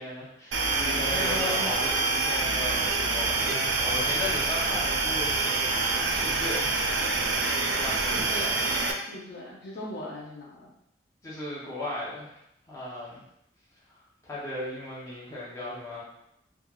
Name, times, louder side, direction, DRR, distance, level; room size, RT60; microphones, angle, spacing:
voice 1, 0.0-5.4 6.1-6.7 7.7-8.6 11.2-12.3 12.6-13.2 13.9-16.0, left 1 dB, 15° left, -8 dB, 0.7 m, -36 dB
voice 2, 0.5-1.7 7.9-8.6 8.9-10.7, left 1 dB, 60° left, -5 dB, 0.6 m, -38 dB
sound 1, 0.5-8.9, right 3 dB, 80° right, 0.4 m, -26 dB
3.1 x 2.3 x 2.3 m, 0.79 s
head